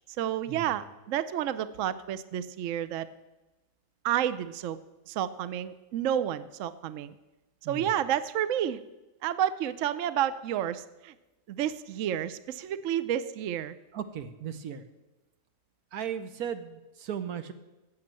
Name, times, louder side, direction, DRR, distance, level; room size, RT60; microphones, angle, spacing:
voice 1, 0.2-3.1 4.0-4.8 5.1-7.2 7.7-8.8 9.2-11.1 11.5-13.8, right 10 dB, 65° right, 15 dB, 0.9 m, -30 dB
voice 2, 13.9-14.8 15.9-17.5, right 8 dB, 85° right, 11 dB, 1.5 m, -36 dB
14.5 x 8.0 x 7.5 m, 1.1 s
omnidirectional pair, 1.5 m